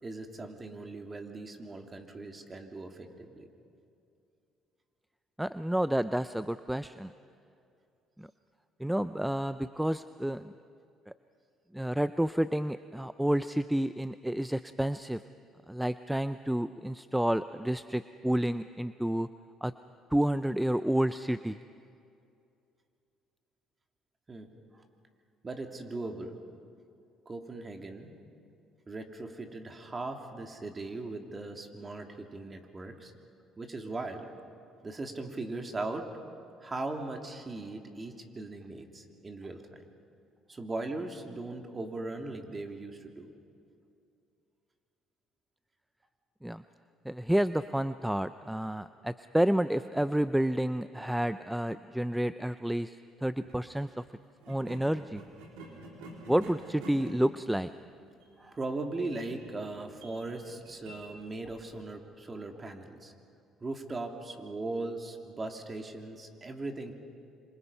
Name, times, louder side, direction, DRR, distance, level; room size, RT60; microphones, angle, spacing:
voice 1, 0.0-3.5 24.3-24.8 25.4-26.4 27.3-28.2 28.9-33.1 33.6-34.3 34.8-36.1 36.6-39.8 40.5-43.3 58.4-63.1 63.6-67.0, right 2 dB, 30° right, 4 dB, 3.0 m, -39 dB
voice 2, 5.4-7.1 8.2-8.3 8.8-10.5 11.7-15.2 15.7-19.3 19.6-19.7 20.1-21.6 46.4-46.6 47.0-54.0 54.5-55.2 56.3-57.7, right 1 dB, 5° right, 13 dB, 0.6 m, -30 dB
sound 1, 53.3-53.6 54.4-61.9, right 2 dB, 85° right, 4.0 m, -49 dB
27.0 x 26.5 x 5.6 m, 2.6 s
supercardioid pair, 75°, 0 cm